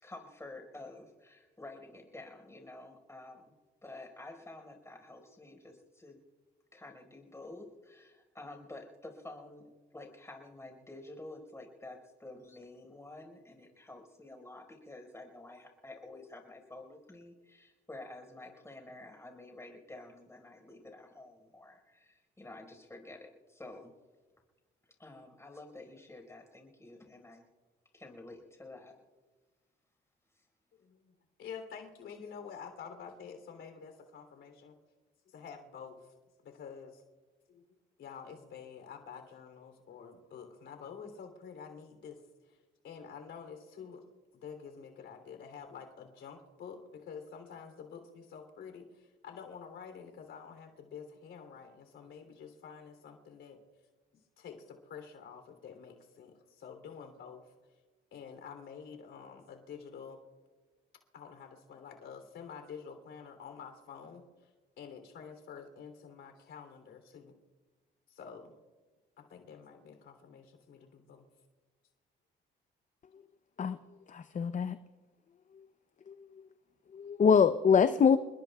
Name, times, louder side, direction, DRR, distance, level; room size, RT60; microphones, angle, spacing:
voice 1, 0.0-3.5 3.8-6.2 6.7-23.2 23.5-23.9 25.0-27.4 27.9-28.9 30.3-30.4, left 2 dB, 15° left, 3 dB, 4.8 m, -50 dB
voice 2, 30.7-34.8 35.2-36.1 36.4-37.0 37.5-37.6 38.0-42.6 42.8-44.0 44.3-53.6 54.4-57.5 58.1-60.2 61.1-64.5 64.8-67.4 68.1-68.5 69.2-71.3, left 6 dB, 75° left, 5 dB, 3.2 m, -48 dB
voice 3, 74.1-74.8 76.1-76.2 76.9-78.2, left 6 dB, 40° left, 10 dB, 0.6 m, -24 dB
29.5 x 20.5 x 2.4 m, 1.3 s
cardioid pair, 90°, 20 cm